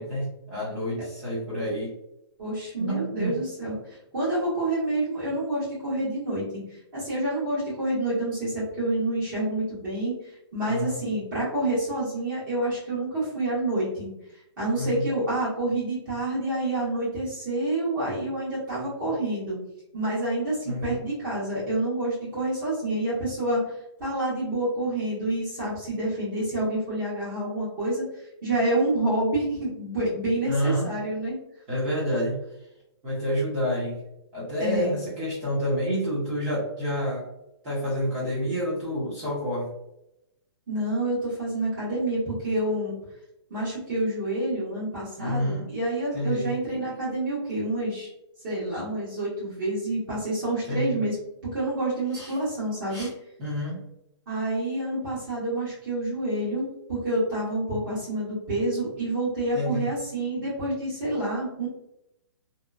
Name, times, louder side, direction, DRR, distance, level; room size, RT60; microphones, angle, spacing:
voice 1, 0.0-1.9 2.8-3.4 10.7-11.0 14.7-15.1 20.7-21.0 30.4-30.9 31.7-32.4 33.0-34.0 34.3-37.3 37.6-39.7 45.2-45.7 46.1-46.5 50.7-51.0 52.1-52.3 52.9-53.1 53.4-53.8 59.5-59.9, equal, 25° right, -9 dB, 0.9 m, -28 dB
voice 2, 2.4-14.1 14.6-19.6 19.9-31.4 34.6-34.9 40.7-42.9 43.5-48.1 48.4-51.2 51.5-53.1 54.3-61.7, right 1 dB, 45° right, -9 dB, 1.4 m, -28 dB
2.8 x 2.2 x 2.4 m, 0.84 s
hypercardioid pair, 160°, 14 cm